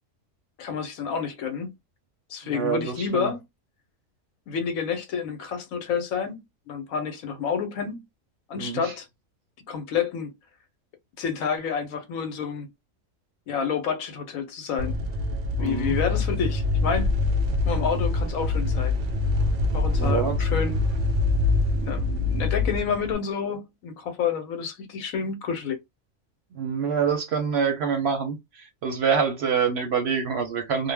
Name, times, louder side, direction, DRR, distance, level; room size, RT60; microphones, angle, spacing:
voice 1, 0.6-1.7 2.3-3.4 4.5-8.0 8.5-9.1 9.7-10.3 11.2-12.7 13.5-15.0 15.6-17.1 17.6-19.0 19.7-20.8 21.7-25.8, left 6 dB, 80° left, 1.1 m, -29 dB
voice 2, 2.5-3.3 8.6-8.9 15.6-16.0 20.0-20.4 26.5-30.9, right 6 dB, 60° right, 0.7 m, -26 dB
sound 1, 14.8-23.1, left 2 dB, 85° right, 0.4 m, -24 dB
2.4 x 2.1 x 3.2 m
omnidirectional pair, 1.4 m